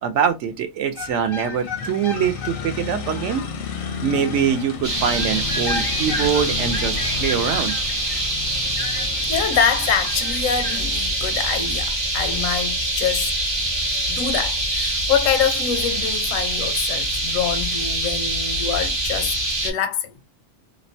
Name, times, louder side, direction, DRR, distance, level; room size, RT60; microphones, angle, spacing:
voice 1, 0.0-3.4 4.0-7.7, right 8 dB, 70° right, 0.9 m, -23 dB
sound 1, 1.0-10.9, left 4 dB, 60° left, 0.6 m, -31 dB
sound 2, 4.8-19.7, right 1 dB, 30° right, 0.5 m, -24 dB
voice 2, 9.3-13.3 14.1-19.3 19.6-20.1, left 7 dB, 85° left, 1.0 m, -25 dB
2.8 x 2.1 x 2.6 m
omnidirectional pair, 1.4 m